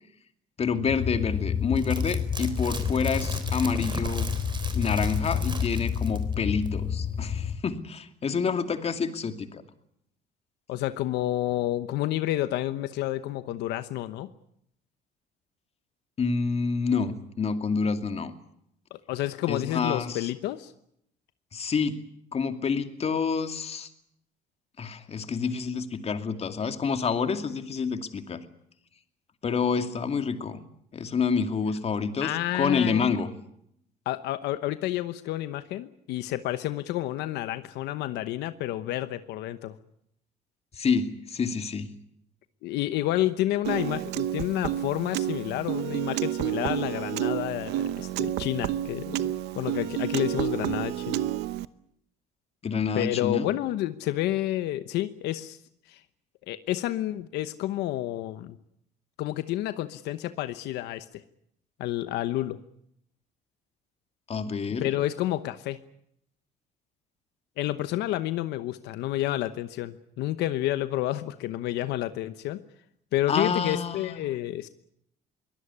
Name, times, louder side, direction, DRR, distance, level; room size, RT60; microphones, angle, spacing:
voice 1, 0.6-4.3 4.7-9.6 16.2-18.3 19.5-20.3 21.5-22.0 22.3-23.9 24.8-28.4 29.4-30.6 30.9-33.3 40.7-41.9 52.6-53.5 64.3-64.9 73.3-74.2, left 5 dB, 35° left, 8 dB, 2.4 m, -28 dB
sound 1, 0.9-7.6, left 7 dB, 55° left, 2.5 m, -29 dB
sound 2, 1.8-6.3 6.7-6.8, right 4 dB, 30° right, 3.7 m, -38 dB
voice 2, 10.7-14.3 18.9-20.7 32.2-33.2 34.1-39.7 42.6-51.2 52.9-55.6 55.9-56.0 56.5-58.6 59.2-61.1 61.8-62.6 64.8-65.8 67.6-72.6 73.1-74.7, left 14 dB, 85° left, 12 dB, 1.0 m, -30 dB
Piano, 43.6-51.7, right 13 dB, 85° right, 0.9 m, -30 dB
23.0 x 18.5 x 9.9 m, 0.75 s
cardioid pair, 110°, 17 cm